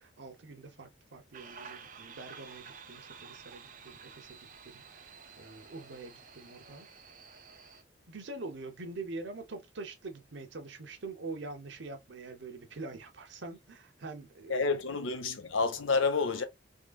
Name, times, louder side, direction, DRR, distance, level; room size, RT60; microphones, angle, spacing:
voice 1, 0.0-5.0 5.4-6.9 8.1-14.7, right 3 dB, 65° right, 0.9 m, -44 dB
sound 1, 1.3-7.8, right 6 dB, 40° right, 0.6 m, -51 dB
voice 2, 14.5-16.4, left 4 dB, 80° left, 0.7 m, -29 dB
3.7 x 3.2 x 2.3 m
head